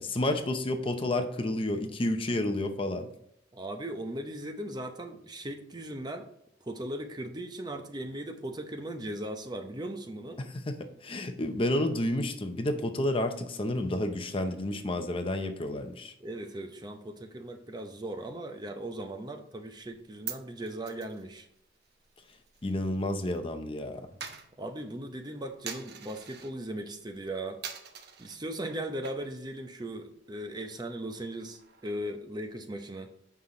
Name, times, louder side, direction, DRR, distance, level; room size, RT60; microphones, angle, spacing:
voice 1, 0.0-3.1 10.6-16.1 22.6-24.1, left 1 dB, 30° left, 7 dB, 0.6 m, -30 dB
voice 2, 3.5-6.3 6.6-10.4 16.2-21.5 24.6-27.6 28.2-33.1, right 1 dB, 20° right, 5 dB, 0.7 m, -38 dB
Coin (dropping), 19.8-23.4 23.6-26.6 27.0-27.3 27.6-28.4 28.9-29.5 29.8-29.9 30.2-32.2, right 7 dB, 55° right, 0.9 m, -45 dB
7.8 x 5.6 x 3.8 m, 0.72 s
head